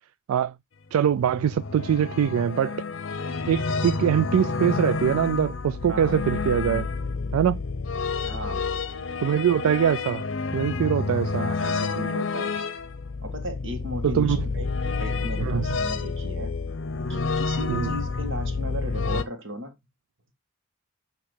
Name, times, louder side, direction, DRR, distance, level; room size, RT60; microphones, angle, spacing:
voice 1, 0.9-2.8 3.5-6.9 7.3-7.6 9.2-10.2 10.5-11.5 14.0-14.4 15.4-15.7 17.7-17.9, right 9 dB, 85° right, 0.3 m, -23 dB
sound 1, 1.0-19.2, left 4 dB, 60° left, 0.7 m, -29 dB
voice 2, 5.9-6.2 8.2-8.7 11.4-12.6 13.2-14.7 15.0-16.5 17.1-19.7, equal, 60° right, 1.7 m, -36 dB
8.6 x 3.0 x 5.0 m
head